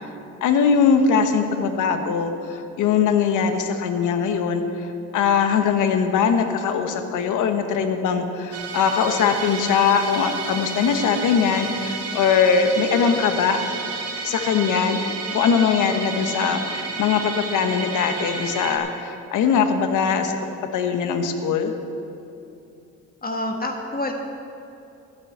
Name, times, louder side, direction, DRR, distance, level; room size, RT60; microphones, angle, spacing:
voice 1, 0.4-4.9 5.1-13.6 14.2-15.0 15.3-21.7, left 6 dB, 85° left, 7 dB, 1.1 m, -21 dB
Musical instrument, 8.5-18.8, right 4 dB, 55° right, 1.7 m, -31 dB
voice 2, 23.2-24.1, left 1 dB, 30° left, 2 dB, 1.5 m, -27 dB
13.5 x 7.0 x 8.0 m, 2.8 s
cardioid pair, 90°, 30 cm